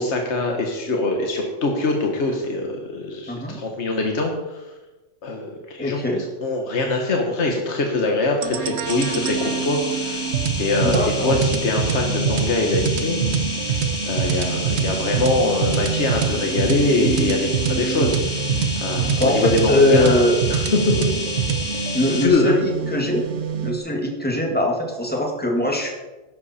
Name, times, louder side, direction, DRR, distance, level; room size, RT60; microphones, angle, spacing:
voice 1, 0.0-4.6 5.2-10.2 10.6-13.5 14.0-20.2 20.5-21.1 22.2-22.5, left 2 dB, 70° left, 2 dB, 1.6 m, -23 dB
voice 2, 3.3-3.6 5.8-6.2 10.8-11.3 19.2-20.4 21.9-23.2 23.6-25.9, left 1 dB, 10° left, 0 dB, 2.1 m, -21 dB
sound 1, 8.4-23.8, right 7 dB, 65° right, 1.1 m, -25 dB
sound 2, 8.8-22.3, left 2 dB, 40° left, 1.8 m, -30 dB
13.5 x 10.5 x 4.3 m, 1.1 s
omnidirectional pair, 1.2 m